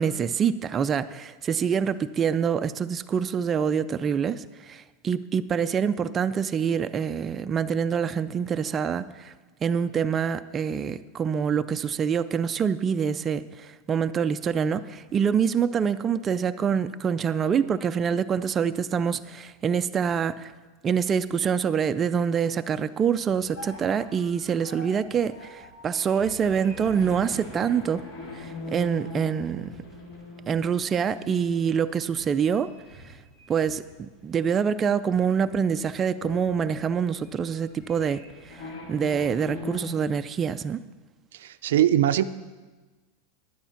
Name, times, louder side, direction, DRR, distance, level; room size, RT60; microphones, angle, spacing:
voice 1, 0.0-9.3 9.6-20.5 20.8-28.1 28.3-29.7 30.5-32.7 33.5-38.6 38.9-40.8, right 7 dB, 20° right, 10 dB, 0.4 m, -26 dB
sound 1, 23.3-34.0 34.4-34.5 35.1-35.5 35.8-39.9, left 1 dB, 70° left, 3.0 m, -42 dB
voice 2, 41.3-42.2, right 12 dB, 85° right, 12 dB, 0.5 m, -21 dB
11.0 x 9.0 x 5.8 m, 1.3 s
supercardioid pair, 145°, 0 cm